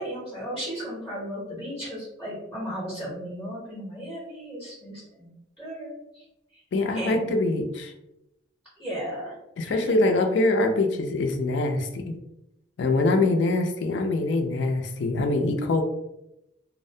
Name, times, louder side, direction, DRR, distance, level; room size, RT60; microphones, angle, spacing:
voice 1, 0.0-5.3 5.6-6.2 6.9-7.2 8.8-9.4 9.6-9.9 13.0-13.3, equal, ahead, -5 dB, 0.6 m, -35 dB
voice 2, 6.7-7.9 9.6-12.2 12.8-15.8, left 2 dB, 65° left, 5 dB, 0.4 m, -24 dB
2.4 x 2.1 x 2.6 m, 0.87 s
head